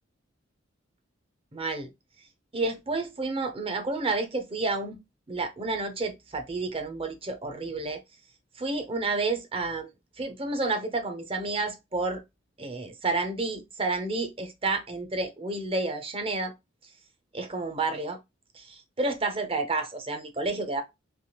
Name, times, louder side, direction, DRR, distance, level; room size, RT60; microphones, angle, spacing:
voice 1, 1.5-1.9 2.5-5.0 5.3-8.0 8.6-9.9 10.2-12.2 12.6-16.5 17.3-18.2 18.5-20.8, right 3 dB, 30° right, 0.7 m, -30 dB
3.4 x 2.5 x 2.8 m
head